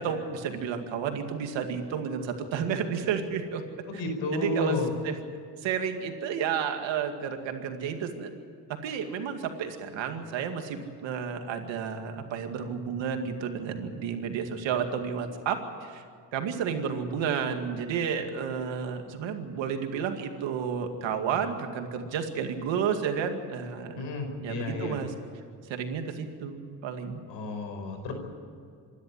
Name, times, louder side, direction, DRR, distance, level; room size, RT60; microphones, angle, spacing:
voice 1, 0.0-3.6 4.3-4.8 5.0-5.2 5.6-8.3 8.8-16.0 16.3-24.0 24.4-25.1 25.7-27.2, right 7 dB, 85° right, 5 dB, 2.3 m, -31 dB
voice 2, 3.9-4.9 23.9-25.0 27.3-28.1, left 1 dB, 80° left, 4 dB, 5.1 m, -31 dB
26.5 x 12.0 x 9.8 m, 2.3 s
supercardioid pair, 65°, 43 cm